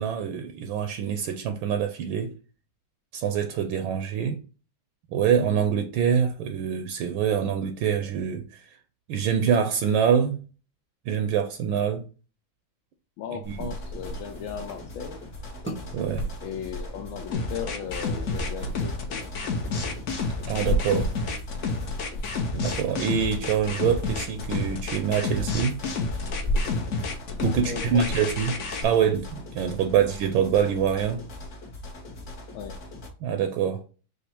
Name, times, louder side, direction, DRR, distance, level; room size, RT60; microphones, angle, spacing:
voice 1, 0.0-2.3 3.1-4.4 5.1-8.8 9.1-10.4 11.1-12.0 13.6-13.7 15.9-16.3 20.5-21.1 22.5-25.8 27.4-28.5 28.8-31.2 33.2-33.8, right 8 dB, 80° right, 1.3 m, -25 dB
voice 2, 13.2-15.2 16.4-19.5 27.7-28.3 29.9-30.1 32.5-32.8, left 7 dB, 80° left, 1.4 m, -36 dB
sound 1, 13.4-28.6, equal, 10° right, 0.8 m, -36 dB
sound 2, 13.5-33.1, left 2 dB, 40° left, 1.4 m, -41 dB
sound 3, 17.3-28.8, left 4 dB, 60° left, 0.8 m, -30 dB
5.1 x 2.4 x 4.4 m
omnidirectional pair, 2.2 m